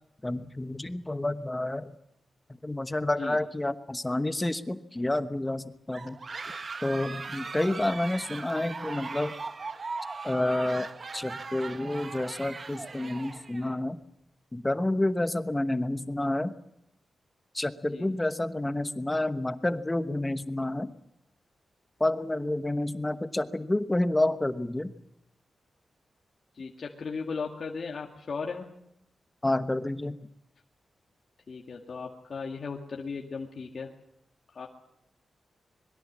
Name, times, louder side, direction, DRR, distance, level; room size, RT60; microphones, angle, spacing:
voice 1, 0.2-1.9 2.6-6.2 6.8-9.3 10.2-10.9 11.1-14.0 14.5-16.5 17.5-20.9 22.0-24.9 29.4-30.2, left 1 dB, 10° left, 10 dB, 1.1 m, -29 dB
sound 1, 5.9-13.7, right 4 dB, 35° right, 0.9 m, -39 dB
voice 2, 26.6-28.7 31.5-33.9 34.5-34.7, left 5 dB, 50° left, 0 dB, 2.0 m, -36 dB
25.5 x 22.0 x 7.4 m, 0.75 s
wide cardioid pair, 165°, 0 cm